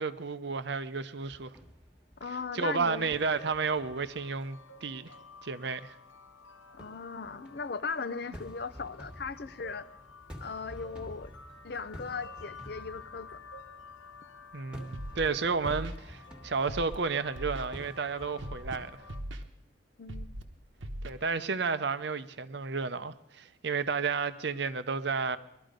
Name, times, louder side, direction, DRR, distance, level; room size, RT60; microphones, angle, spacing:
voice 1, 0.0-1.6 2.5-5.1 5.4-6.0 14.5-18.9 21.0-25.4, right 4 dB, 55° right, 0.7 m, -32 dB
sound 1, 1.2-5.5 5.9-6.5 6.8-19.3, equal, 5° right, 1.4 m, -51 dB
voice 2, 2.2-3.1 6.7-9.9 10.4-11.3 11.6-13.4 20.0-20.3, left 5 dB, 50° left, 0.5 m, -38 dB
sound 2, 2.7-19.2, left 3 dB, 80° left, 1.2 m, -51 dB
Scratching (performance technique), 14.9-15.3 15.6-16.0 16.7-17.0 17.4-17.7 18.4-18.8 19.1-19.4 20.1-20.4 20.8-21.1, right 1 dB, 75° right, 1.1 m, -39 dB
19.5 x 12.5 x 5.2 m
head